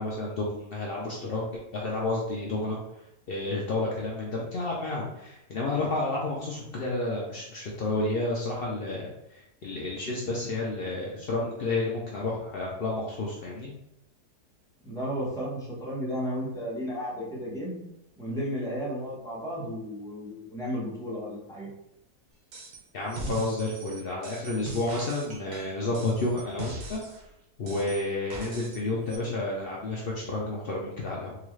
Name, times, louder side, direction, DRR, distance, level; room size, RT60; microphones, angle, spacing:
voice 1, 0.0-2.8 3.3-13.7 22.9-27.0 27.6-31.4, left 2 dB, 80° left, -3 dB, 0.5 m, -31 dB
voice 2, 14.8-17.9 18.2-21.7, equal, 5° left, -6 dB, 0.8 m, -33 dB
sound 1, 22.5-22.8 23.1-27.2 27.7-28.8 29.1-29.2, right 2 dB, 75° right, 1.3 m, -40 dB
3.8 x 2.5 x 3.1 m, 0.84 s
omnidirectional pair, 1.7 m